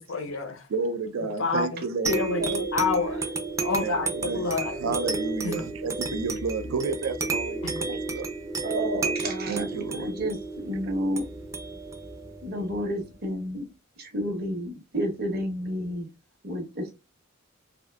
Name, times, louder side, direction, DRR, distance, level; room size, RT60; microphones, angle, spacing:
voice 1, 0.1-0.7 1.4-3.2 3.6-4.8 5.4-5.6 7.6-7.8, left 4 dB, 75° left, 0.6 m, -29 dB
voice 2, 0.7-2.2 3.8-4.4 4.8-8.3 9.5-10.1, right 4 dB, 75° right, 0.4 m, -31 dB
sound 1, 2.1-13.1, right 3 dB, 15° right, 0.4 m, -32 dB
voice 3, 8.6-11.3 12.4-13.7 14.0-16.1 16.4-16.9, equal, 50° right, 0.9 m, -31 dB
3.4 x 2.5 x 2.2 m
head